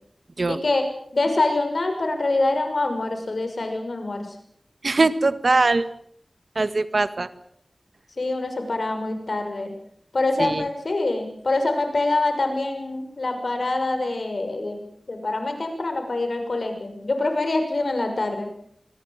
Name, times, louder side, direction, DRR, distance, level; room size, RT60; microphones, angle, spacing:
voice 1, 0.5-0.8 1.1-4.3 8.2-9.7 10.1-14.8 15.1-18.5, left 2 dB, 70° left, 6 dB, 6.3 m, -25 dB
voice 2, 4.8-5.9 6.6-7.3 10.4-10.7, right 3 dB, 65° right, 12 dB, 1.8 m, -21 dB
25.5 x 21.5 x 7.5 m, 0.65 s
wide cardioid pair, 50°, 0 cm